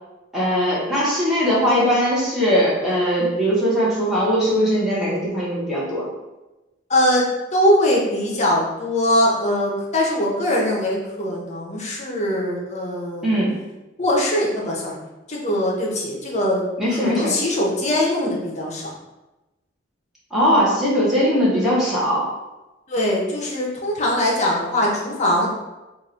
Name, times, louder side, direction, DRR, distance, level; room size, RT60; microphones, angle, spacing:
voice 1, 0.3-6.1 13.2-13.5 16.8-17.3 20.3-22.3, equal, ahead, -8 dB, 1.4 m, -20 dB
voice 2, 6.9-13.4 14.0-15.0 15.3-16.6 17.0-18.9 22.9-25.5, left 1 dB, 35° left, -3 dB, 0.9 m, -21 dB
3.8 x 2.7 x 4.3 m, 1.0 s
head